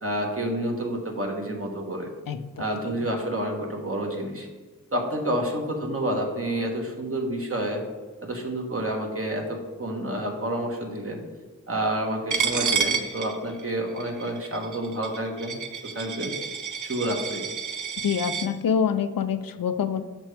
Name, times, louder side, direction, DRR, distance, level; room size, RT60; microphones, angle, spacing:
voice 1, 0.0-2.1 2.6-4.5 4.9-7.8 8.2-11.2 11.7-16.3 16.8-17.5, right 1 dB, 40° right, 1 dB, 1.3 m, -29 dB
Coin (dropping), 12.3-18.5, right 6 dB, 60° right, 0.7 m, -30 dB
voice 2, 18.0-20.0, left 7 dB, 80° left, 10 dB, 0.5 m, -25 dB
6.5 x 6.0 x 3.4 m, 1.3 s
cardioid pair, 45°, 34 cm